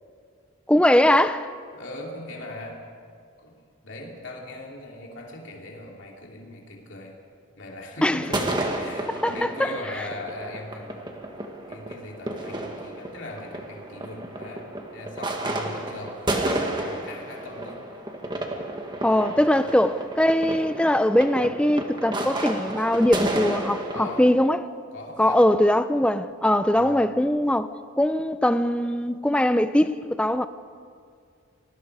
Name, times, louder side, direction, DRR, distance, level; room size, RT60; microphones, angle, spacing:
voice 1, 0.7-1.5 8.0-8.3 9.2-9.7 19.0-24.7 25.2-27.7 28.0-30.5, left 1 dB, 5° left, 0.5 m, -21 dB
voice 2, 1.7-2.9 3.4-3.6 3.8-7.2 7.6-11.2 11.7-16.2 16.7-17.9 19.3-19.5 23.9-24.3 24.9-25.4 26.7-27.0, left 2 dB, 60° left, 3.0 m, -39 dB
sound 1, 8.2-24.3, right 1 dB, 20° right, 1.7 m, -31 dB
27.5 x 20.0 x 4.9 m
head